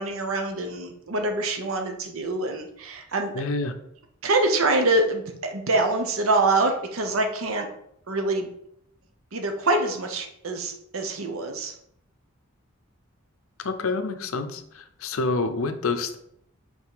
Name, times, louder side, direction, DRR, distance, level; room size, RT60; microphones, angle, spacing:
voice 1, 0.0-3.3 4.2-7.7 8.1-8.5 9.3-11.7, right 2 dB, 85° right, 5 dB, 0.9 m, -25 dB
voice 2, 3.3-3.8 13.6-16.2, left 3 dB, 85° left, 9 dB, 0.7 m, -28 dB
5.4 x 3.8 x 4.8 m, 0.71 s
head